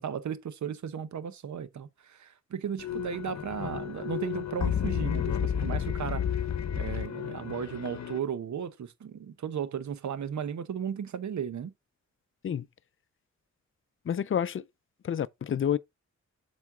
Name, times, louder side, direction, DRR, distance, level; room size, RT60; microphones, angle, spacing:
voice 1, 0.0-6.2 6.7-11.7, right 8 dB, 75° right, 0.9 m, -35 dB
sound 1, 2.8-8.2, left 8 dB, 65° left, 0.8 m, -32 dB
voice 2, 14.1-14.6 15.0-15.8, left 9 dB, 45° left, 0.5 m, -29 dB
7.2 x 4.3 x 3.7 m
cardioid pair, 80°, 30 cm